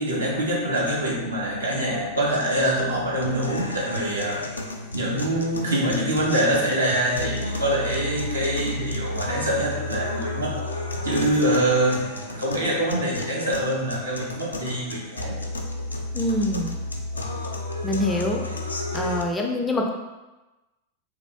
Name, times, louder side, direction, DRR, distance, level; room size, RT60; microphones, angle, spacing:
voice 1, 0.0-4.4 4.9-10.6 11.0-15.4, right 1 dB, 75° right, -4 dB, 0.9 m, -25 dB
sound 1, 3.2-19.2, left 2 dB, 75° left, 0.4 m, -32 dB
voice 2, 16.1-16.8 17.8-18.4 18.9-19.9, left 1 dB, 15° left, 1 dB, 0.4 m, -25 dB
3.2 x 2.4 x 3.4 m, 1.1 s
figure-of-eight pair, 90°, 0 cm